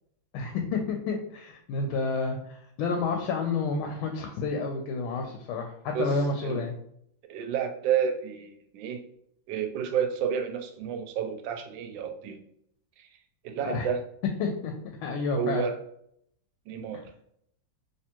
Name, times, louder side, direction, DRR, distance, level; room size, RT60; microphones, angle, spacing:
voice 1, 0.3-6.7 13.6-13.9 14.4-14.7 15.0-15.6, left 4 dB, 85° left, 2 dB, 1.4 m, -30 dB
voice 2, 7.3-9.0 9.5-12.4 13.0-13.1 13.4-14.0 15.3-15.8 16.7-17.0, right 8 dB, 75° right, 5 dB, 1.2 m, -30 dB
3.4 x 2.9 x 2.9 m, 0.70 s
omnidirectional pair, 2.2 m